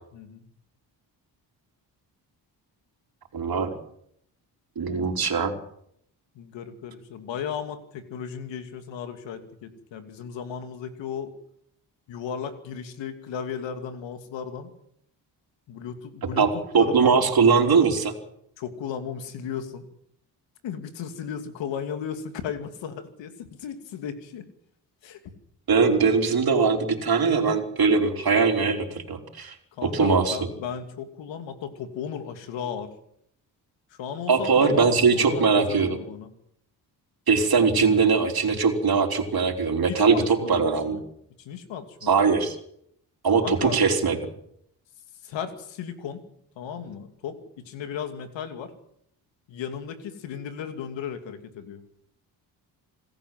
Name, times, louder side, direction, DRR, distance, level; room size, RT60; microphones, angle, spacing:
voice 1, 0.1-0.4 4.8-5.2 6.3-11.3 12.1-14.7 15.7-17.2 18.6-19.9 20.6-24.4 25.0-25.2 29.8-32.9 33.9-36.3 39.9-41.0 41.4-42.1 43.4-43.8 45.2-46.3 46.6-48.7 49.5-51.8, left 7 dB, 80° left, 8 dB, 2.7 m, -35 dB
voice 2, 3.3-3.7 4.8-5.5 16.4-18.1 25.7-29.5 29.8-30.4 34.3-36.0 37.3-41.0 42.0-42.6 43.2-44.2, right 5 dB, 55° right, 4 dB, 4.1 m, -21 dB
27.0 x 14.0 x 7.8 m, 0.72 s
supercardioid pair, 60°, 44 cm